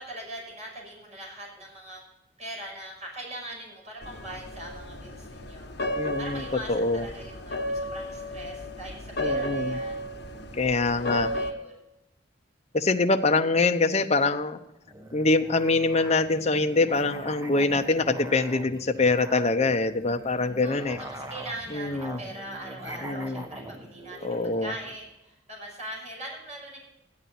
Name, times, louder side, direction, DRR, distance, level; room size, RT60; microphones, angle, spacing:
voice 1, 0.0-2.0 2.4-10.0 10.9-11.8 20.6-26.8, right 1 dB, 40° right, -1 dB, 5.9 m, -41 dB
sound 1, 4.0-11.5, left 1 dB, 65° left, 1.4 m, -33 dB
voice 2, 5.9-7.0 9.2-9.8 10.5-11.3 12.7-14.6 15.1-21.0 21.7-22.2 23.0-23.4 24.2-24.7, left 3 dB, 35° left, 6 dB, 0.9 m, -24 dB
Musical instrument, 14.9-25.0, right 1 dB, 20° right, 1.0 m, -43 dB
13.5 x 11.0 x 4.3 m, 0.91 s
head